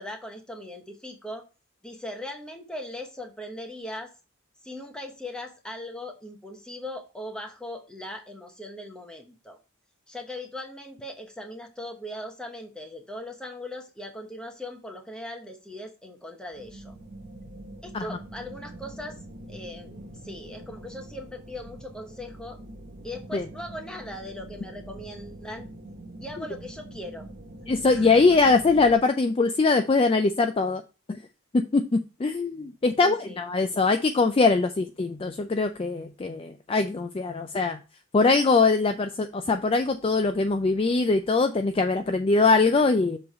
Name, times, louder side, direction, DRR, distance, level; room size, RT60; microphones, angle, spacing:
voice 1, 0.0-1.5 1.8-4.1 4.6-9.6 10.1-17.0 17.8-19.2 19.5-22.6 23.0-25.7 26.2-27.3 27.9-28.3 33.0-33.4, left 1 dB, 5° left, 3 dB, 0.9 m, -39 dB
sound 1, 16.5-28.9, right 1 dB, 40° right, 1.0 m, -44 dB
voice 2, 27.7-30.8 31.1-31.2 31.5-37.8 38.1-43.2, left 3 dB, 25° left, 7 dB, 0.3 m, -22 dB
7.0 x 3.3 x 5.3 m, 0.32 s
head